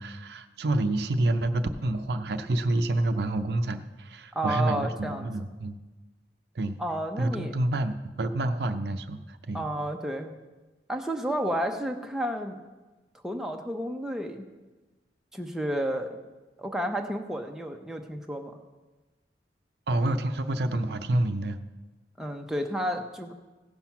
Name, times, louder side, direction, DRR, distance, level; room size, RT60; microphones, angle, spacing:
voice 1, 0.0-5.8 6.6-6.8 7.2-9.6 19.9-21.6, right 1 dB, 65° right, 9 dB, 0.6 m, -28 dB
voice 2, 4.3-5.3 6.8-7.5 9.5-10.4 10.9-12.6 13.2-14.5 15.3-16.2 16.6-18.6 22.2-23.3, right 1 dB, 5° right, 3 dB, 0.6 m, -31 dB
15.5 x 5.8 x 5.8 m, 1.2 s
head